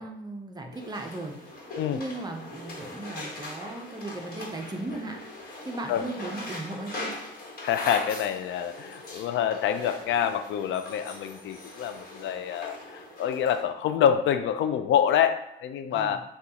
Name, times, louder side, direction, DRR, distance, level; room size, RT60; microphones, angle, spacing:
voice 1, 0.0-1.6 1.9-5.2 5.6-7.1 15.9-16.2, right 2 dB, 20° right, 3 dB, 0.7 m, -37 dB
sound 1, 0.7-13.6, left 1 dB, 50° left, 1.3 m, -41 dB
voice 2, 7.6-12.8 13.2-16.2, left 9 dB, 75° left, 9 dB, 0.4 m, -26 dB
6.3 x 2.4 x 2.8 m, 0.82 s
cardioid pair, 90°, 20 cm